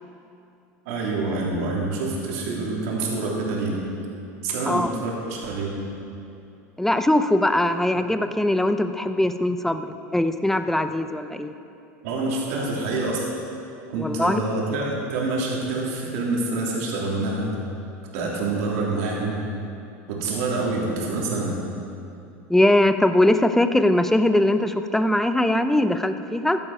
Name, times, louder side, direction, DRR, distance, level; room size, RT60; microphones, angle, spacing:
voice 1, 0.8-3.8 4.4-5.8 12.0-13.3 13.9-17.5 18.1-19.4 20.1-21.6, right 3 dB, 75° right, -3 dB, 3.4 m, -26 dB
voice 2, 6.8-11.5 14.0-14.4 22.5-26.6, left 1 dB, 5° left, 9 dB, 0.7 m, -21 dB
15.5 x 11.0 x 5.0 m, 2.7 s
hypercardioid pair, 100°, 8 cm